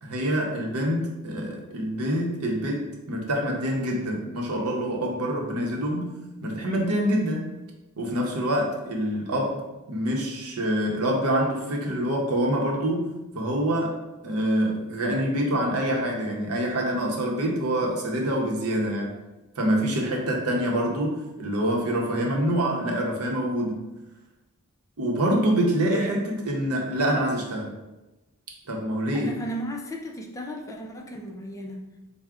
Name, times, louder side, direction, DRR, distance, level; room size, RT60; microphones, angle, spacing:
voice 1, 0.0-7.5 8.0-9.6 9.9-14.0 14.2-19.1 19.6-23.8 25.0-27.7 28.7-29.3, right 1 dB, 85° right, 0 dB, 0.7 m, -26 dB
voice 2, 29.1-32.0, equal, 15° left, 1 dB, 0.4 m, -35 dB
4.6 x 2.1 x 3.6 m, 1.0 s
head